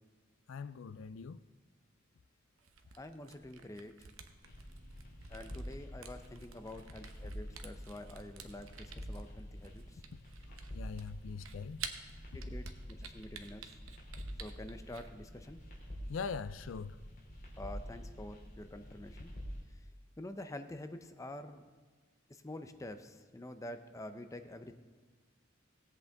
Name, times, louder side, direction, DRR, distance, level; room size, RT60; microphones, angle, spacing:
voice 1, 0.5-1.4 10.7-11.8 16.1-17.0, left 5 dB, 75° left, 0.4 m, -41 dB
Camera, 2.6-15.1, right 7 dB, 85° right, 0.8 m, -51 dB
voice 2, 2.9-4.1 5.3-10.0 11.5-11.6 12.3-13.7 14.4-15.6 17.6-19.4 19.7-19.8 20.2-21.6 22.3-24.7, left 1 dB, 15° left, 0.5 m, -47 dB
sound 1, 4.4-19.6, equal, 45° left, 2.7 m, -47 dB
17.5 x 8.1 x 3.5 m
head